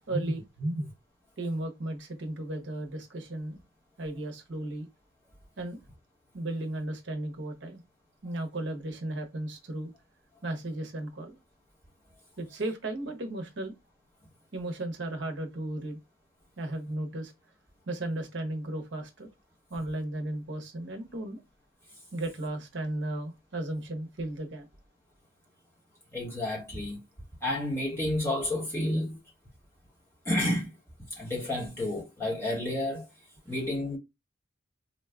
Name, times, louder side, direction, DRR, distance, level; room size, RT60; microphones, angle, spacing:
voice 1, 0.1-0.9 1.4-3.6 4.0-4.9 5.6-5.8 6.3-7.8 8.2-9.9 10.4-11.4 12.4-13.7 14.5-16.0 16.6-17.3 17.9-19.3 19.7-21.4 22.1-24.7, right 1 dB, 55° right, 0.7 m, -35 dB
voice 2, 26.1-27.0 27.4-29.2 30.2-30.7 31.1-33.1 33.4-34.0, left 1 dB, 10° left, 1.1 m, -30 dB
3.9 x 2.2 x 2.2 m
head